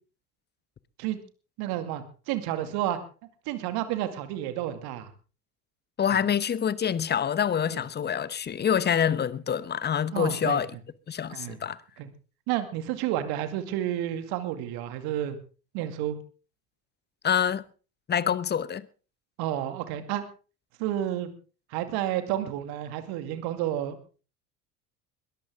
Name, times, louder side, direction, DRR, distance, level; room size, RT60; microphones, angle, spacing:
voice 1, 1.6-3.0 3.5-5.1 7.7-7.8 10.1-10.6 11.3-11.6 12.0-12.1 12.5-15.4 15.7-16.2 19.4-20.2 20.8-21.3 21.7-24.0, right 12 dB, 55° right, 2.3 m, -30 dB
voice 2, 6.0-10.7 11.1-11.8 17.2-17.6 18.1-18.8, left 8 dB, 20° left, 1.0 m, -26 dB
21.0 x 14.0 x 3.6 m
figure-of-eight pair, 65°, 45 cm